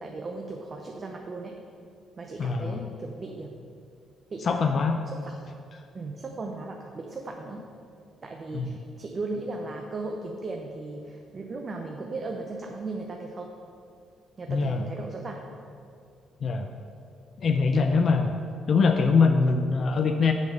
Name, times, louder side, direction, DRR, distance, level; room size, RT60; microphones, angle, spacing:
voice 1, 0.0-1.6 2.2-3.5 4.3-5.4 5.9-7.6 8.2-13.5 14.4-15.5, right 3 dB, 40° right, 2 dB, 0.6 m, -37 dB
voice 2, 2.4-2.9 4.4-5.0 8.5-8.7 14.5-14.8 16.4-16.7 17.4-18.3 18.7-20.3, left 4 dB, 55° left, 5 dB, 0.4 m, -23 dB
7.3 x 3.9 x 6.4 m, 2.4 s
cardioid pair, 90°, 0 cm